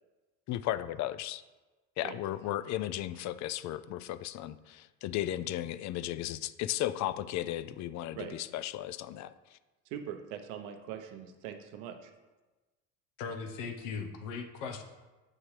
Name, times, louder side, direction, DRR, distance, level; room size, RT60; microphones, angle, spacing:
voice 1, 0.5-1.4 2.0-9.6, left 13 dB, 50° left, 14 dB, 0.4 m, -35 dB
voice 2, 9.9-12.1, right 9 dB, 80° right, 7 dB, 0.9 m, -42 dB
voice 3, 13.2-14.8, left 5 dB, 85° left, 5 dB, 0.9 m, -38 dB
7.5 x 6.2 x 3.2 m, 1.2 s
supercardioid pair, 85°, 37 cm